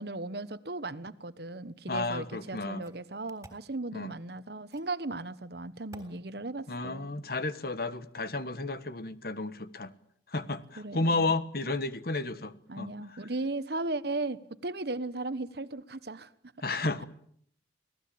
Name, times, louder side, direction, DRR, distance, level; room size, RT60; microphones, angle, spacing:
voice 1, 0.0-7.1 10.8-11.3 11.7-11.8 12.7-16.3 16.6-16.7, right 2 dB, 60° right, 1.2 m, -36 dB
voice 2, 1.9-2.8 3.9-4.1 6.7-9.9 10.3-12.9 16.6-17.0, left 2 dB, 55° left, 1.4 m, -32 dB
sound 1, 2.1-2.2 2.8-3.7 4.7-5.0 5.9-6.1, right 1 dB, 15° right, 3.7 m, -52 dB
26.5 x 18.0 x 8.6 m
head